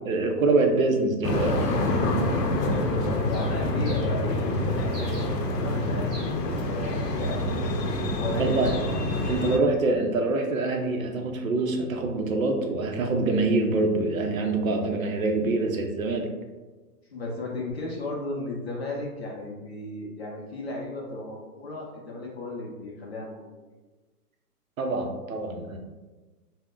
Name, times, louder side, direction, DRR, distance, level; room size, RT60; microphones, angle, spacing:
voice 1, 0.1-1.7 6.8-6.9 8.4-8.8 9.3-16.3 24.8-25.8, right 3 dB, 60° right, 3 dB, 0.5 m, -25 dB
sound 1, 1.2-9.6, left 1 dB, 80° left, 0.7 m, -26 dB
voice 2, 2.6-7.8 8.1-9.0 17.1-23.5, left 2 dB, 45° left, -3 dB, 0.5 m, -35 dB
Bird, 3.3-10.0, right 1 dB, 10° right, 0.8 m, -50 dB
2.3 x 2.1 x 3.5 m, 1.3 s
hypercardioid pair, 170°, 47 cm